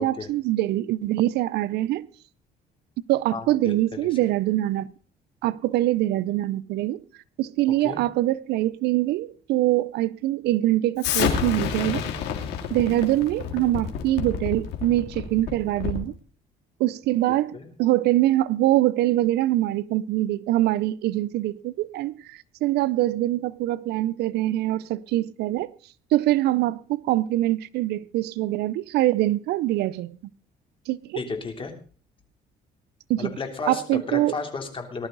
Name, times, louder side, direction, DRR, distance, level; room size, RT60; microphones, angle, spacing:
voice 1, 0.0-2.1 3.1-4.9 5.4-7.0 7.4-12.0 12.7-16.1 16.8-25.7 26.1-30.2 30.9-31.2 33.1-33.3 33.7-34.4, right 15 dB, 80° right, 0.6 m, -24 dB
voice 2, 3.3-4.0 7.7-8.0 17.5-17.7 31.2-31.7 33.2-35.1, left 4 dB, 30° left, 3.2 m, -33 dB
Explosion, 11.0-16.1, left 8 dB, 85° left, 2.7 m, -29 dB
19.5 x 12.0 x 3.9 m
cardioid pair, 110°, 17 cm